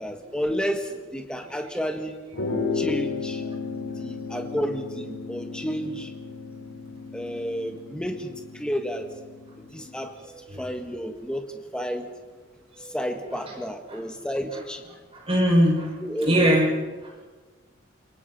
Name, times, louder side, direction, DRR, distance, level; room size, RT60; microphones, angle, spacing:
voice 1, 0.0-2.2 2.7-3.4 3.9-6.1 7.1-9.1 9.7-10.1 10.6-12.1 12.8-14.8 16.0-16.5, equal, 5° left, 4 dB, 1.7 m, -31 dB
sound 1, 2.3-10.1, left 4 dB, 90° left, 4.5 m, -34 dB
voice 2, 9.8-10.1 10.5-10.7 12.8-13.0 13.3-13.5 13.9-14.0 15.1-16.7 17.0-17.2, equal, 25° right, -3 dB, 6.4 m, -24 dB
28.0 x 23.5 x 4.3 m, 1.3 s
head